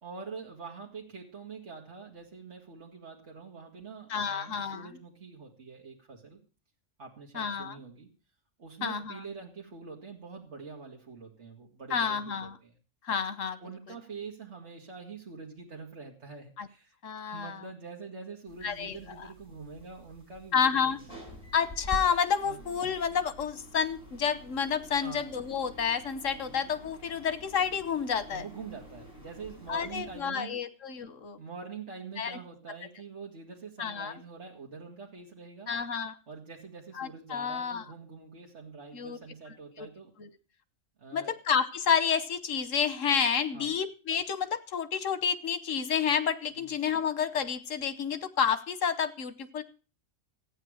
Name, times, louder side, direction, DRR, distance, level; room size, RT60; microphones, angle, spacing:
voice 1, 0.0-6.4 7.0-8.1 8.6-12.7 13.6-21.2 22.4-22.6 24.9-25.2 26.4-26.6 28.3-30.6 31.4-35.7 36.3-40.1 41.0-41.4 43.5-43.7 46.6-46.7, right 5 dB, 60° right, -1 dB, 2.3 m, -45 dB
voice 2, 4.1-4.9 7.3-7.8 8.8-9.2 11.9-12.6 13.0-13.6 13.9-14.0 16.6-16.7 17.0-17.6 18.6-19.0 20.5-21.0 21.5-28.4 29.7-31.4 32.2-32.4 33.8-34.1 35.7-36.2 37.0-37.8 38.9-39.2 39.8-39.9 40.2-40.3 41.1-49.6, left 7 dB, 80° left, 13 dB, 1.4 m, -30 dB
sound 1, 18.5-30.2, equal, 25° left, 5.4 m, -47 dB
14.5 x 9.2 x 6.3 m, 0.36 s
omnidirectional pair, 1.3 m